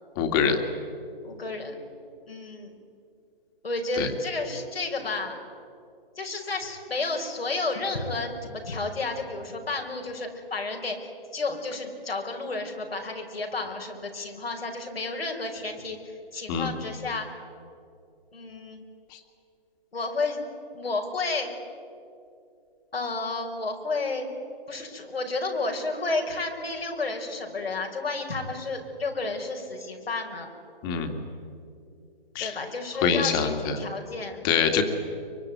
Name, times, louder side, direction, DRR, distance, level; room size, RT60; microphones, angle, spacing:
voice 1, 0.2-0.6 4.0-4.1 16.5-16.7 30.8-31.2 32.4-32.6 32.9-33.8 34.4-34.8, left 7 dB, 20° left, 6 dB, 2.2 m, -24 dB
voice 2, 1.2-1.8 2.3-2.7 3.6-5.4 6.2-11.0 11.3-16.0 16.3-17.3 18.3-18.8 19.9-20.4 20.7-21.5 22.9-24.3 24.7-30.5 32.4-34.4, left 3 dB, 85° left, 2 dB, 5.5 m, -31 dB
24.0 x 22.5 x 9.4 m, 2.5 s
hypercardioid pair, 150°, 29 cm